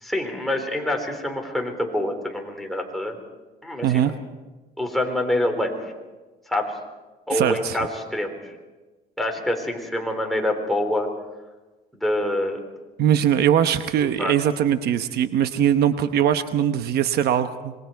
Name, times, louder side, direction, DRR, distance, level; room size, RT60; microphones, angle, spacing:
voice 1, 0.0-3.2 3.6-4.1 4.8-5.9 6.5-6.7 7.3-8.5 9.2-11.1 12.0-12.6 14.2-14.3, left 1 dB, ahead, 1 dB, 4.1 m, -26 dB
voice 2, 3.8-4.1 7.3-7.8 13.0-17.7, right 10 dB, 70° right, 10 dB, 1.0 m, -21 dB
26.0 x 21.5 x 4.6 m, 1.2 s
cardioid pair, 110°, 17 cm